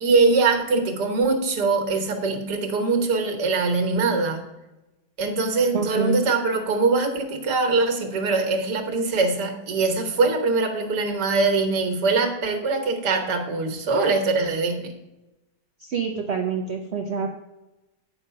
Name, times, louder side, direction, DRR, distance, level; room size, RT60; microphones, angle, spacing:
voice 1, 0.0-4.4 5.2-14.9, right 3 dB, 85° right, 5 dB, 1.8 m, -22 dB
voice 2, 5.7-6.2 15.8-17.3, right 5 dB, 55° right, 2 dB, 0.8 m, -26 dB
9.1 x 5.0 x 5.5 m, 1.0 s
omnidirectional pair, 1.7 m